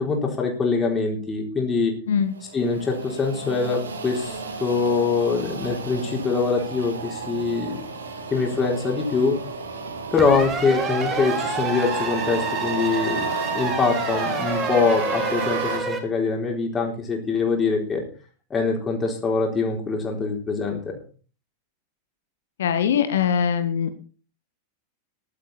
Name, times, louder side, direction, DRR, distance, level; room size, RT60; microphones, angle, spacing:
voice 1, 0.0-1.9 2.5-7.8 8.3-9.4 10.1-18.0 18.5-21.0, left 4 dB, 20° left, 0 dB, 4.0 m, -24 dB
sound 1, 2.3-15.8, right 4 dB, 70° right, 2.5 m, -32 dB
sound 2, 10.2-16.0, right 4 dB, 20° right, 2.8 m, -28 dB
voice 2, 22.6-24.0, left 8 dB, 60° left, 10 dB, 1.5 m, -22 dB
14.5 x 12.0 x 4.3 m, 0.39 s
figure-of-eight pair, 90°, 0 cm